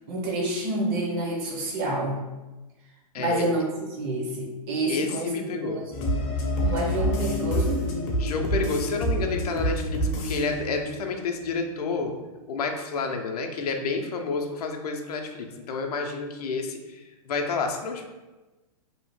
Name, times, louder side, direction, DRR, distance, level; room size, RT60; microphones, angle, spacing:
voice 1, 0.1-2.2 3.1-5.8 6.2-7.9 14.0-14.1, right 1 dB, 40° right, -2 dB, 0.7 m, -28 dB
voice 2, 4.9-5.8 8.2-12.1 12.5-18.1, left 4 dB, 85° left, 3 dB, 0.5 m, -30 dB
sound 1, 5.9-12.0 12.3-12.4, equal, 35° left, 0.5 m, -28 dB
2.7 x 2.1 x 3.0 m, 1.1 s
hypercardioid pair, 150°, 19 cm